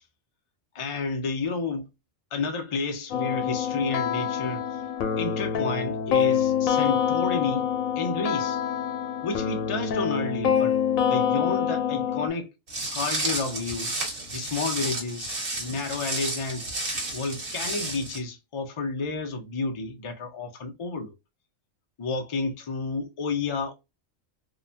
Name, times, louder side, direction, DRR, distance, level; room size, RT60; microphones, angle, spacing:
voice 1, 0.7-1.9 2.3-4.7 5.2-7.7 8.0-8.6 9.2-10.8 11.1-12.5 12.9-14.0 14.3-16.7 17.1-21.1 22.0-23.7, left 4 dB, 50° left, 0.3 m, -31 dB
sound 1, 3.1-12.3, left 8 dB, 90° left, 1.0 m, -26 dB
Walk footsteps, 12.7-18.2, right 2 dB, 55° right, 1.4 m, -32 dB
2.9 x 2.1 x 2.6 m
omnidirectional pair, 1.4 m